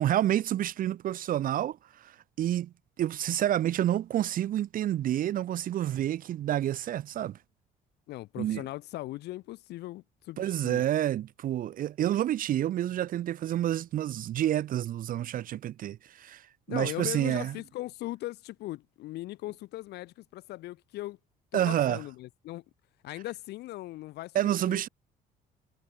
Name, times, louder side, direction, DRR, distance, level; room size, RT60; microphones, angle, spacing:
voice 1, 0.0-7.4 8.4-8.6 10.4-17.5 21.5-22.0 24.3-24.9, right 12 dB, 55° right, 0.8 m, -29 dB
voice 2, 8.1-10.8 16.7-21.2 21.5-22.6 23.0-24.9, left 17 dB, 80° left, 2.0 m, -39 dB
cardioid pair, 110°, 17 cm